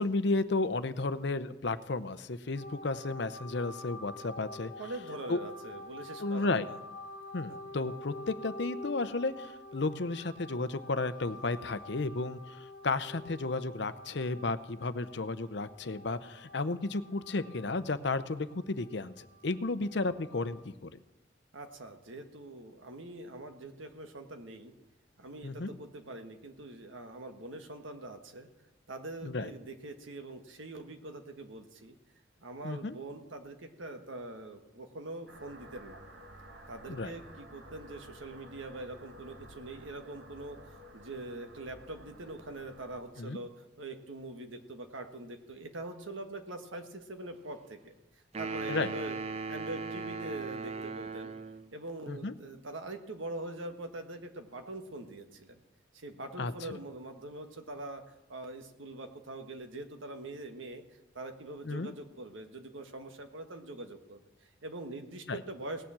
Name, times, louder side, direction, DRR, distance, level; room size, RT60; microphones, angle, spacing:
voice 1, 0.0-4.7 5.3-5.4 6.2-6.6 7.3-20.9 25.4-25.7 29.2-29.5 32.6-32.9 36.9-37.1 43.2-43.4 48.7-48.9 52.1-52.3 56.4-56.5 61.7-61.9 65.3-65.4, left 3 dB, 60° left, 13 dB, 0.7 m, -33 dB
sound 1, 2.6-20.6, left 2 dB, 40° left, 1.4 m, -48 dB
voice 2, 4.8-6.8 7.5-7.6 21.5-24.7 25.2-28.5 28.9-31.9 32.4-36.0 36.7-43.5 43.8-47.9 48.4-49.2 49.5-51.3 51.7-55.6 55.9-60.8 61.1-65.8, right 2 dB, 80° right, 6 dB, 1.5 m, -43 dB
sound 2, 35.3-43.0, right 1 dB, 65° right, 1.8 m, -52 dB
sound 3, 48.3-51.7, right 4 dB, 30° right, 0.5 m, -38 dB
18.5 x 7.1 x 7.5 m, 0.96 s
head